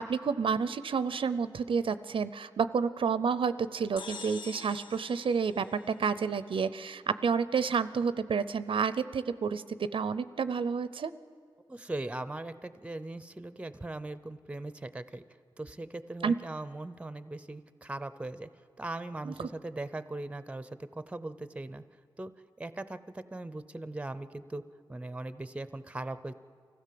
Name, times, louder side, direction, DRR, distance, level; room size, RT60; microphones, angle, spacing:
voice 1, 0.0-11.1 16.2-16.3 19.2-19.3, right 6 dB, 90° right, 14 dB, 0.6 m, -30 dB
sound 1, 4.0-6.5, left 5 dB, 70° left, 0.6 m, -46 dB
voice 2, 11.7-15.2 15.6-18.5 18.8-21.8 22.2-22.3 22.6-24.6 24.9-26.3, right 2 dB, 15° right, 13 dB, 0.6 m, -39 dB
24.5 x 16.0 x 7.6 m, 2.1 s
wide cardioid pair, 140°, 9 cm